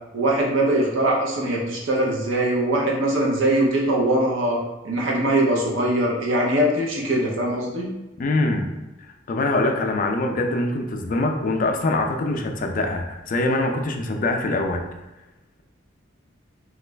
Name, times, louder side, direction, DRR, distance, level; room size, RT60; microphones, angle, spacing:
voice 1, 0.1-4.6 4.8-7.9, right 1 dB, 85° right, -2 dB, 0.7 m, -21 dB
voice 2, 8.2-8.7 9.3-14.8, left 2 dB, 45° left, 4 dB, 0.4 m, -23 dB
3.0 x 2.4 x 3.3 m, 1.0 s
head